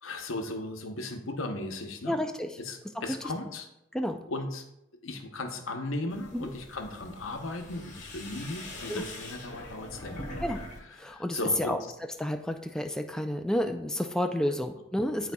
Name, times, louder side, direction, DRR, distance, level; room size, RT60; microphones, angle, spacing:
voice 1, 0.0-2.2 2.6-3.7 4.3-4.7 5.0-10.2 11.0-11.8 14.5-14.6 15.2-15.3, left 2 dB, 75° left, 4 dB, 0.9 m, -36 dB
voice 2, 2.1-2.5 3.0-3.1 3.9-4.2 6.3-6.5 8.9-9.0 10.4-10.6 11.0-11.8 12.2-15.3, left 1 dB, 5° left, 5 dB, 0.3 m, -30 dB
sound 1, 6.1-10.8 11.1-11.7, left 1 dB, 35° left, 1.5 m, -43 dB
12.0 x 4.1 x 2.3 m, 0.85 s
head